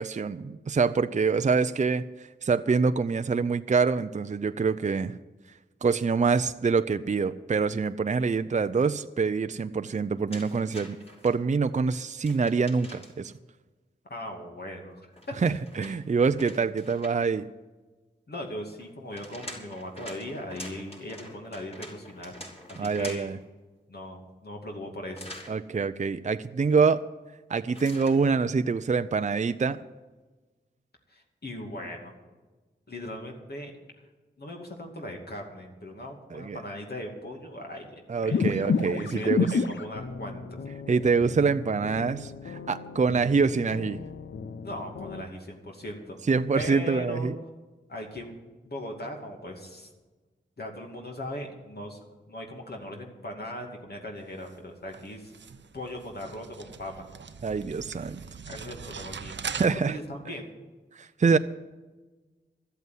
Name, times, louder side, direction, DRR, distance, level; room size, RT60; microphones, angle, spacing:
voice 1, 0.0-2.0 2.4-5.1 5.8-11.0 11.2-13.3 15.4-17.5 22.8-23.4 25.5-27.0 27.5-29.8 36.3-36.6 38.1-39.5 40.9-44.0 46.3-47.4 57.4-58.2 59.5-60.0 61.0-61.4, right 5 dB, 40° right, 10 dB, 0.5 m, -25 dB
sound 1, 10.3-11.3 12.2-13.3 15.1-17.4 18.8-23.4 25.1-25.5 27.7-28.2, left 1 dB, 30° left, 4.7 m, -45 dB
voice 2, 14.0-15.0 15.3-15.4 18.3-22.4 22.8-23.3 23.9-25.3 31.1-32.1 32.9-33.7 34.4-38.4 38.9-40.6 44.6-46.2 46.5-47.3 47.9-48.4 48.6-49.9 50.6-52.0 52.3-55.3 55.7-57.1 58.4-59.4 59.7-60.5, left 1 dB, 55° left, 1 dB, 2.6 m, -39 dB
sound 2, 38.3-45.2, left 5 dB, 75° left, 0.8 m, -31 dB
sound 3, 54.2-59.7, right 6 dB, 75° right, 0.8 m, -41 dB
13.0 x 8.2 x 9.4 m, 1.3 s
cardioid pair, 40°, 19 cm